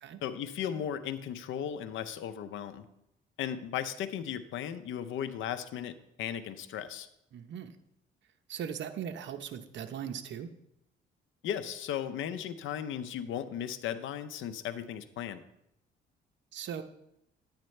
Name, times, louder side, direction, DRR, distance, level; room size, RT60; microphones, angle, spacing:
voice 1, 0.2-2.9 3.4-7.1 11.4-15.4, left 9 dB, 80° left, 11 dB, 0.7 m, -36 dB
voice 2, 7.3-7.8 8.5-10.5 16.5-16.8, right 8 dB, 65° right, 7 dB, 0.8 m, -39 dB
10.0 x 8.8 x 3.2 m, 0.81 s
cardioid pair, 90°, 20 cm